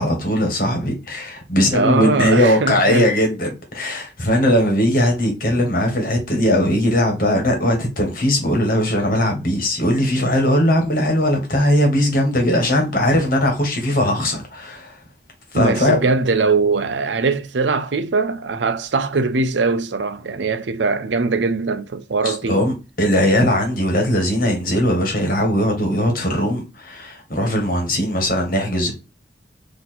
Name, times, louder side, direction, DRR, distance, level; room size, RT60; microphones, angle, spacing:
voice 1, 0.0-15.0 15.5-16.0 22.2-28.9, left 1 dB, 50° left, 1.6 m, -19 dB
voice 2, 1.7-3.1 15.5-22.6, right 4 dB, 90° right, 0.6 m, -21 dB
4.1 x 2.9 x 4.3 m
head